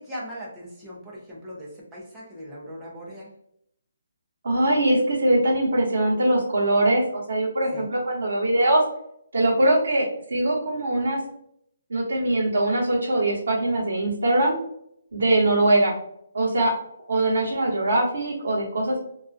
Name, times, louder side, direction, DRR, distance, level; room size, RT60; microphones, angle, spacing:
voice 1, 0.0-3.3 7.7-7.9, equal, 5° right, -7 dB, 0.5 m, -39 dB
voice 2, 4.4-8.8 9.3-11.2 11.9-14.6 15.1-15.9 16.3-16.7 17.1-19.0, right 1 dB, 50° right, -7 dB, 1.0 m, -22 dB
2.4 x 2.3 x 2.4 m, 0.72 s
hypercardioid pair, 180°, 0 cm